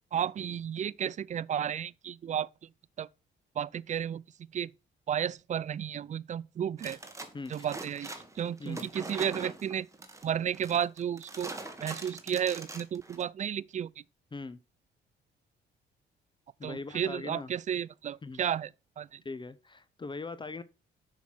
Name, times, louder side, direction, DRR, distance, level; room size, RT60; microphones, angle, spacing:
voice 1, 0.1-2.5 3.0-3.1 3.6-4.2 4.5-4.7 5.1-7.0 7.5-9.9 10.2-11.5 11.8-13.9 16.6-18.7 19.0-19.2, right 9 dB, 35° right, 0.4 m, -33 dB
sound 1, 6.8-13.2, right 2 dB, 15° right, 1.6 m, -43 dB
voice 2, 7.3-7.7 8.6-8.9 14.3-14.6 16.6-17.5 18.2-18.4 19.2-20.6, left 3 dB, 25° left, 0.6 m, -40 dB
7.1 x 6.0 x 6.0 m
cardioid pair, 90°, 20 cm